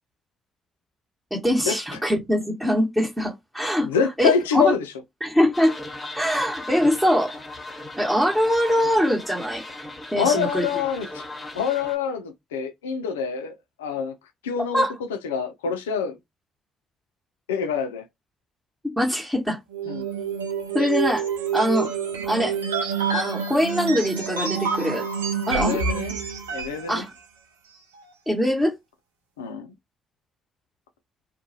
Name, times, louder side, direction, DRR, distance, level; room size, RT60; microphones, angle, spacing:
voice 1, 1.3-3.9 4.2-4.7 5.2-5.7 6.1-7.3 8.0-9.6 10.1-10.7 14.7-14.9 19.0-19.6 20.7-21.3 21.5-21.9 22.3-22.6 23.1-25.1 25.5-26.0 26.9-27.1 28.3-28.7, equal, 5° right, 1.0 m, -22 dB
voice 2, 3.8-4.9 10.2-11.2 11.5-14.1 14.4-14.8 15.2-16.2 17.5-18.0 19.9-20.0 25.5-26.2 26.5-27.0 29.4-29.7, left 6 dB, 85° left, 0.3 m, -26 dB
sound 1, 5.5-12.0, left 2 dB, 25° left, 0.8 m, -38 dB
sound 2, 19.7-26.9, right 6 dB, 90° right, 0.4 m, -27 dB
2.3 x 2.1 x 2.7 m
hypercardioid pair, 45°, 0 cm